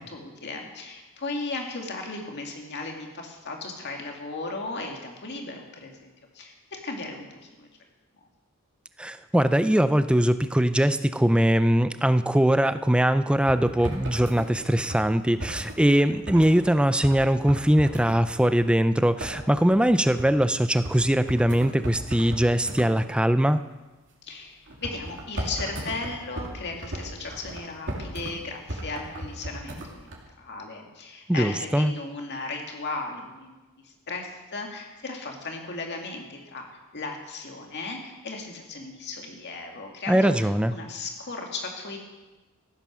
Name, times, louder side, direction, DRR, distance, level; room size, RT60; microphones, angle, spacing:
voice 1, 0.0-7.7 24.3-33.5 33.8-42.0, left 3 dB, 50° left, 2 dB, 2.2 m, -36 dB
voice 2, 9.0-23.6 31.3-31.9 40.1-40.7, right 1 dB, 5° right, 12 dB, 0.4 m, -21 dB
sound 1, 13.5-16.6 17.0-17.2 17.5-18.8 19.2-20.4 20.8-21.0 21.3-22.9 24.7-28.3 28.7-30.2, right 1 dB, 55° right, 2.6 m, -36 dB
15.0 x 9.1 x 6.2 m, 1.1 s
head